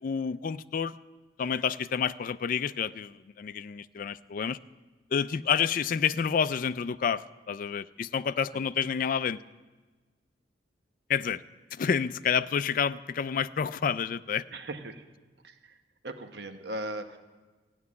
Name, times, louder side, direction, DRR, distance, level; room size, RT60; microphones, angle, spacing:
voice 1, 0.0-0.9 1.4-4.6 5.1-9.4 11.1-11.4 11.7-14.4, left 7 dB, 50° left, 14 dB, 0.3 m, -29 dB
voice 2, 14.5-15.0 15.4-15.8 16.0-17.2, right 1 dB, 60° right, 7 dB, 1.1 m, -38 dB
15.0 x 6.9 x 9.6 m, 1.3 s
head